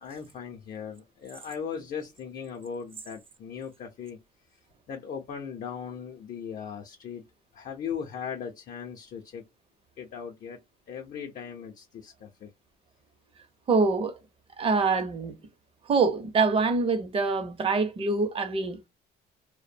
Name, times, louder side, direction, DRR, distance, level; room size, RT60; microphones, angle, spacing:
voice 1, 0.0-4.2 4.9-7.2 7.5-9.4 10.0-10.6 10.9-12.5, left 7 dB, 55° left, 0.6 m, -38 dB
voice 2, 13.7-14.2 14.6-15.3 15.9-18.8, right 4 dB, 35° right, 0.7 m, -25 dB
2.6 x 2.1 x 2.5 m
cardioid pair, 110°, 17 cm